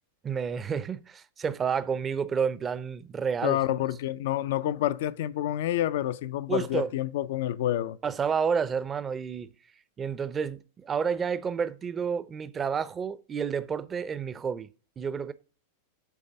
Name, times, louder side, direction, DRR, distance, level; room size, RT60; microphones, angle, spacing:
voice 1, 0.2-3.6 6.5-6.9 8.0-9.5 10.0-14.7 15.0-15.3, right 6 dB, 25° right, 0.5 m, -30 dB
voice 2, 3.4-8.0, left 13 dB, 70° left, 0.4 m, -28 dB
8.4 x 3.3 x 6.4 m
hypercardioid pair, 115°, 0 cm